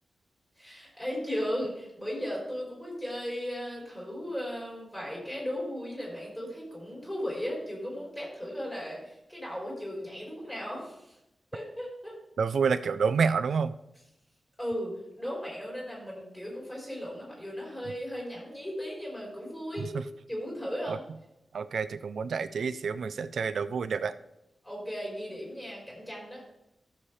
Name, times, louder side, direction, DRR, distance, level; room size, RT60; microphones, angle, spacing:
voice 1, 0.6-11.2 11.5-12.2 14.6-19.9 20.3-21.0 24.6-26.4, equal, 10° left, -4 dB, 4.3 m, -36 dB
voice 2, 12.4-13.7 20.9-21.0 21.5-24.1, right 5 dB, 85° right, 13 dB, 0.5 m, -28 dB
14.0 x 7.1 x 3.3 m, 0.87 s
wide cardioid pair, 175°, 0 cm